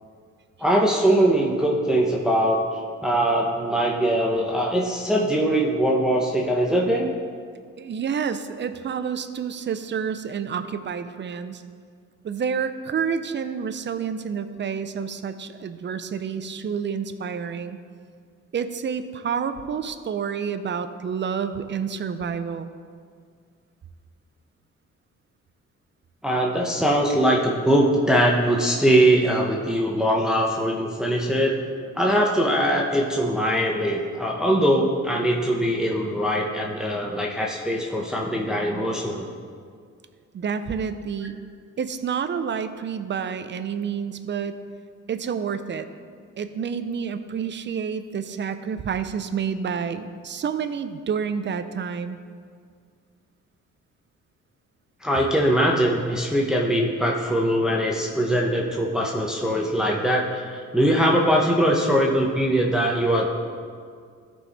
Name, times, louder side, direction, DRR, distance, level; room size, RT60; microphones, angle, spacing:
voice 1, 0.6-7.1 26.2-31.6 31.9-39.3 55.0-63.3, right 1 dB, ahead, -2 dB, 0.9 m, -22 dB
voice 2, 7.8-11.6 12.2-17.8 18.5-22.7 40.3-41.4 41.8-44.6 45.1-45.9 46.4-52.2, right 6 dB, 40° right, 11 dB, 0.6 m, -29 dB
14.0 x 4.7 x 4.2 m, 2.1 s
cardioid pair, 90°, 30 cm